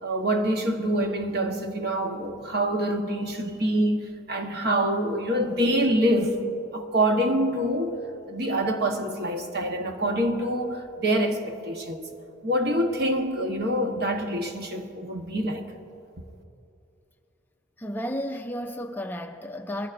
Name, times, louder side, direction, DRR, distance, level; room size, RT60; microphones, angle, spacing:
voice 1, 0.0-6.4 6.7-8.0 8.3-12.1 12.4-15.6, right 1 dB, 50° right, 1.1 m, -26 dB
voice 2, 17.8-19.9, equal, 10° left, 0.4 m, -33 dB
22.0 x 16.0 x 2.5 m
head